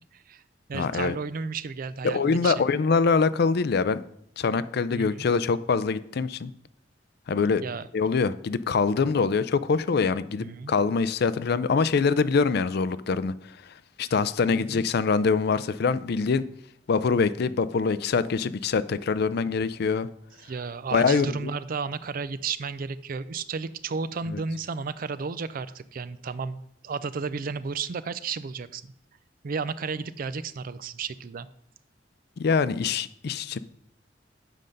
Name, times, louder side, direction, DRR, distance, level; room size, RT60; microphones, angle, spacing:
voice 1, 0.1-0.4 0.7-2.6 4.9-5.3 7.6-7.9 10.4-10.7 14.5-14.8 20.4-28.8 29.4-31.5, right 5 dB, 50° right, 15 dB, 0.4 m, -33 dB
voice 2, 0.7-1.1 2.0-4.0 4.4-6.5 7.3-7.6 7.9-13.3 14.0-16.4 16.9-20.1 20.9-21.5 24.3-24.4 32.4-33.6, left 5 dB, 55° left, 15 dB, 0.4 m, -24 dB
7.7 x 5.3 x 6.5 m, 0.71 s
head